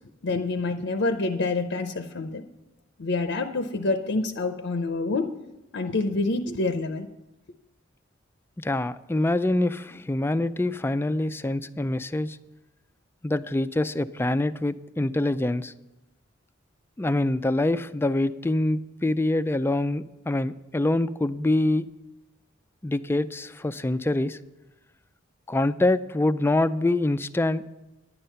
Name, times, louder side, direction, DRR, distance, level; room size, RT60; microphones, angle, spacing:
voice 1, 0.2-2.4 3.0-5.3 5.7-7.1, left 3 dB, 65° left, 0.6 m, -27 dB
voice 2, 8.6-12.4 13.2-15.7 17.0-21.9 22.8-24.4 25.5-27.6, left 2 dB, 10° left, 0.3 m, -25 dB
10.5 x 9.1 x 5.6 m
head